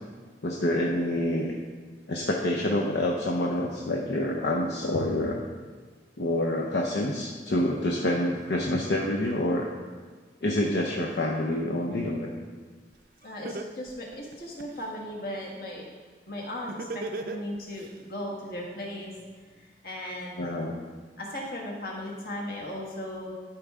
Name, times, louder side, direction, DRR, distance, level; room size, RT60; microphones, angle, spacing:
voice 1, 0.4-1.5 2.1-5.4 6.2-9.7 10.4-12.3 20.4-20.7, left 1 dB, 70° left, -1 dB, 0.7 m, -27 dB
Laughter, 12.9-13.0 13.4-14.9 16.7-17.9, right 2 dB, 55° right, 0.5 m, -35 dB
voice 2, 13.2-15.8 16.3-20.4 21.2-23.4, left 1 dB, 55° left, -2 dB, 1.6 m, -37 dB
12.5 x 4.6 x 3.6 m, 1.5 s
head